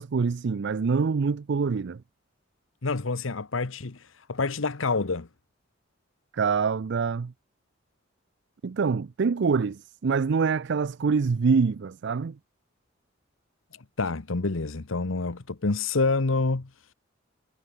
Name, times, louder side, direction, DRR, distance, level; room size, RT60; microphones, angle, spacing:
voice 1, 0.0-2.0 6.3-7.3 8.6-12.4, right 5 dB, 60° right, 0.4 m, -25 dB
voice 2, 2.8-5.3 14.0-16.7, left 3 dB, 85° left, 1.1 m, -27 dB
head